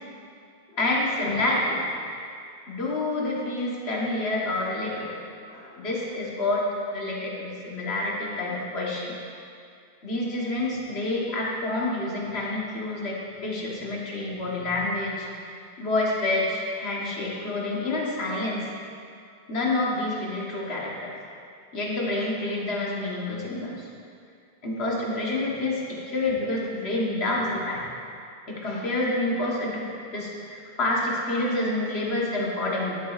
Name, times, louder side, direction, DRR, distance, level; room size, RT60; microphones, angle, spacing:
voice 1, 0.7-1.8 2.7-5.2 5.5-9.1 10.0-18.7 19.5-21.1 21.7-23.9 24.6-27.8 28.5-29.8 30.1-33.0, left 2 dB, 90° left, -3 dB, 1.5 m, -28 dB
12.0 x 7.0 x 2.4 m, 2.4 s
omnidirectional pair, 1.0 m